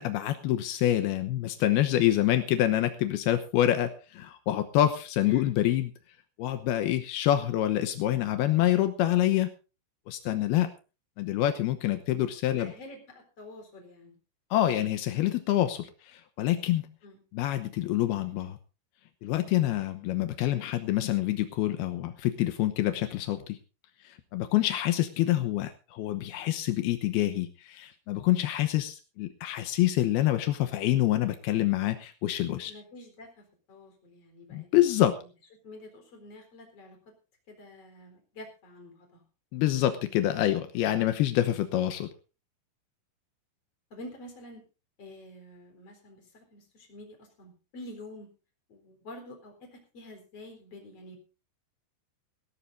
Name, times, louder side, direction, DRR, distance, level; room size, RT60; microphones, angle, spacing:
voice 1, 0.0-5.9 6.4-9.5 10.1-10.7 11.2-12.7 14.5-16.8 17.3-18.6 19.2-23.6 24.0-32.7 34.5-35.2 39.5-42.1, left 13 dB, 80° left, 8 dB, 2.3 m, -26 dB
voice 2, 12.6-14.2 17.0-17.2 32.7-34.9 35.2-35.3 35.6-37.0 37.5-39.2 43.9-44.6 45.0-48.3 48.7-51.2, left 1 dB, 30° left, 4 dB, 4.6 m, -48 dB
18.0 x 17.5 x 2.6 m, 0.33 s
omnidirectional pair, 5.7 m